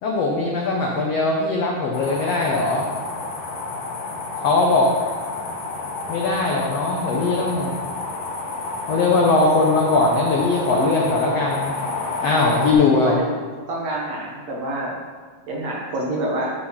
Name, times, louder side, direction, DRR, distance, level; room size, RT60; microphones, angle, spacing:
voice 1, 0.0-2.9 4.4-4.9 6.1-7.8 8.9-11.7 12.2-13.2, left 3 dB, 80° left, -1 dB, 1.4 m, -20 dB
sound 1, 1.9-12.7, left 3 dB, 65° left, 2.5 m, -30 dB
voice 2, 12.9-13.3 13.7-14.9 15.5-16.5, right 1 dB, 65° right, -3 dB, 1.8 m, -27 dB
11.5 x 4.1 x 5.6 m, 1.5 s
omnidirectional pair, 4.1 m